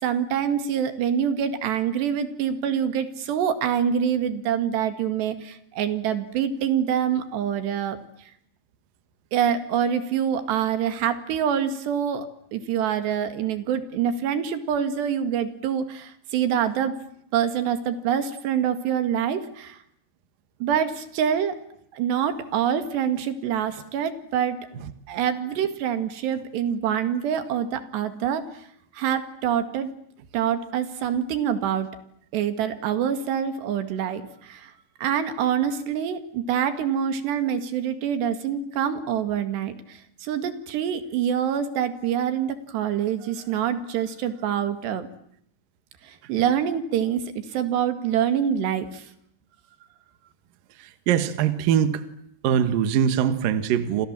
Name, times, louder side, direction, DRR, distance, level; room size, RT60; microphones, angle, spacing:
voice 1, 0.0-8.0 9.3-12.3 12.5-17.0 17.3-19.8 20.6-21.6 21.9-24.7 25.1-28.6 28.9-29.9 30.3-31.9 32.3-34.7 35.0-45.1 46.0-49.1, right 8 dB, 85° right, 9 dB, 4.2 m, -25 dB
voice 2, 51.1-52.0 52.4-54.1, right 9 dB, 65° right, 10 dB, 2.8 m, -22 dB
29.5 x 26.5 x 7.5 m, 0.71 s
omnidirectional pair, 4.7 m